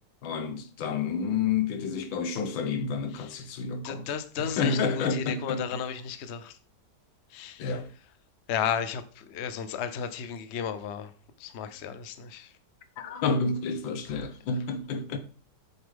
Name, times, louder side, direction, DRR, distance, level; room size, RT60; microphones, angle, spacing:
voice 1, 0.2-4.1 4.4-5.8 7.6-7.9 13.0-15.2, left 5 dB, 90° left, 1.8 m, -30 dB
voice 2, 3.8-6.6 7.3-7.7 8.5-11.1 11.4-12.5, left 8 dB, 50° left, 0.8 m, -34 dB
8.5 x 6.7 x 3.6 m
omnidirectional pair, 2.0 m